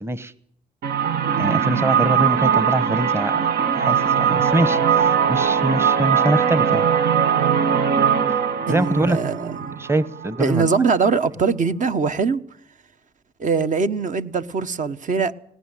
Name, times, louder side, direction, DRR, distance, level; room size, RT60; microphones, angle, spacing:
voice 1, 0.0-0.3 1.4-3.4 3.8-6.9 8.7-9.2 9.8-10.7, right 1 dB, 15° right, 1.2 m, -23 dB
sound 1, 0.8-10.5, right 7 dB, 75° right, 1.3 m, -20 dB
voice 2, 8.7-9.8 10.4-12.4 13.4-15.3, right 5 dB, 50° right, 1.3 m, -22 dB
19.0 x 18.0 x 9.1 m
supercardioid pair, 60°, 16 cm